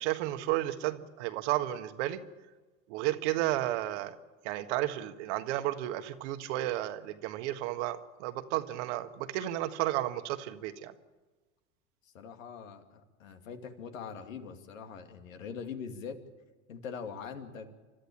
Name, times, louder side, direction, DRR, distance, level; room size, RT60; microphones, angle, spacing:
voice 1, 0.0-2.2 2.9-4.2 4.4-10.9, right 15 dB, 55° right, 9 dB, 1.6 m, -32 dB
voice 2, 12.1-16.2 16.7-17.7, left 6 dB, 70° left, 6 dB, 2.4 m, -42 dB
29.5 x 13.0 x 8.6 m, 1.3 s
hypercardioid pair, 85°, 40 cm